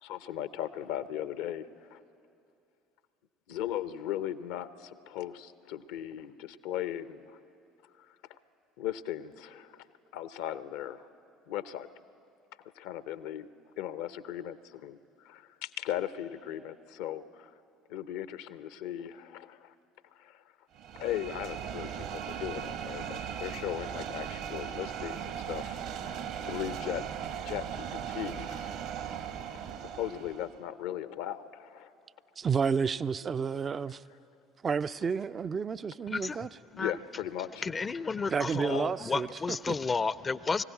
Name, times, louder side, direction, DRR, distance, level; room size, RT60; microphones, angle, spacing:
voice 1, 0.0-2.0 3.5-7.3 8.0-8.2 8.8-9.8 10.1-11.0 11.5-11.9 12.8-13.5 13.8-17.5 17.9-19.7 20.1-20.4 21.0-26.2 26.4-27.1 27.4-28.8 29.2-29.3 29.9-31.9 33.9-34.0 36.7-37.7 38.7-38.8, left 11 dB, 65° left, 0.7 m, -38 dB
sound 1, 20.7-30.6, right 8 dB, 60° right, 1.3 m, -38 dB
voice 2, 32.4-34.0 34.6-36.5 38.3-39.7, right 6 dB, 35° right, 0.4 m, -31 dB
voice 3, 36.1-36.4 36.8-36.9 37.6-40.6, left 4 dB, 30° left, 0.5 m, -32 dB
23.5 x 16.5 x 9.4 m
figure-of-eight pair, 55°, 0 cm